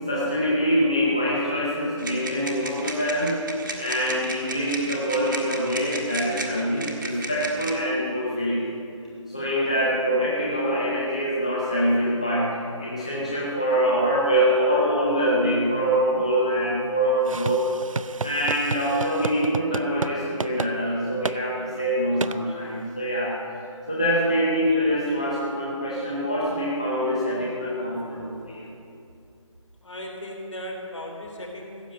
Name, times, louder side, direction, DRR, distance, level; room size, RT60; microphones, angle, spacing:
voice 1, 0.1-3.3 3.8-8.7 9.3-17.7 18.2-23.4 23.9-28.7, equal, 10° left, -6 dB, 0.6 m, -24 dB
sound 1, 2.0-7.7, right 2 dB, 40° right, 1.4 m, -35 dB
sound 2, 17.3-20.1 20.4-20.7 21.2-21.4 22.2-22.4, right 4 dB, 75° right, 0.5 m, -30 dB
voice 2, 29.8-31.9, left 1 dB, 65° left, 1 dB, 3.1 m, -37 dB
15.5 x 7.0 x 8.8 m, 2.6 s
figure-of-eight pair, 175°, 17 cm